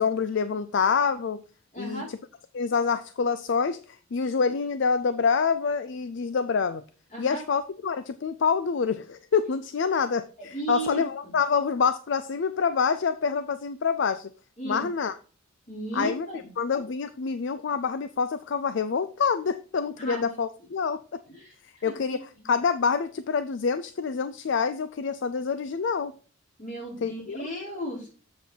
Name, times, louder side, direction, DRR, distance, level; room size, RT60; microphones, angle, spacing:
voice 1, 0.0-1.4 1.8-2.2 2.5-6.8 7.2-14.3 14.6-15.2 15.9-16.3 16.6-21.0 21.8-26.2 27.0-27.5, left 5 dB, 60° left, 13 dB, 0.4 m, -26 dB
voice 2, 1.7-2.1 7.1-7.4 10.4-11.3 14.6-14.8 15.7-16.5 20.0-20.3 21.3-21.5 21.8-22.5 26.6-28.1, right 1 dB, 35° left, -3 dB, 4.8 m, -35 dB
7.5 x 6.9 x 4.4 m, 0.40 s
head